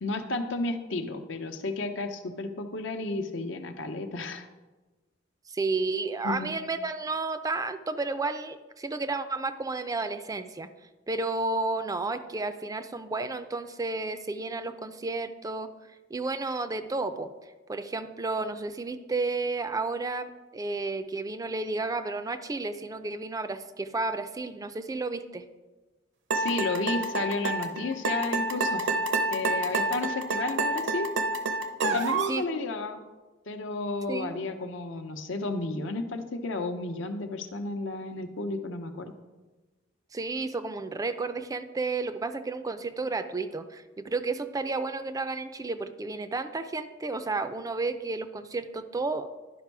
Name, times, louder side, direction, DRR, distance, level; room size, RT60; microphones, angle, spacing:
voice 1, 0.0-4.5 6.2-6.6 26.3-28.9 29.3-31.1 31.9-33.0 33.5-39.1, left 2 dB, 75° left, 6 dB, 0.8 m, -32 dB
voice 2, 5.5-10.7 11.1-15.7 16.1-17.3 17.7-25.4 32.3-32.4 34.1-34.4 40.1-49.3, right 3 dB, 20° right, 10 dB, 0.4 m, -32 dB
sound 1, 26.3-32.4, right 2 dB, 65° right, 0.7 m, -28 dB
11.0 x 5.3 x 4.7 m, 1.2 s
head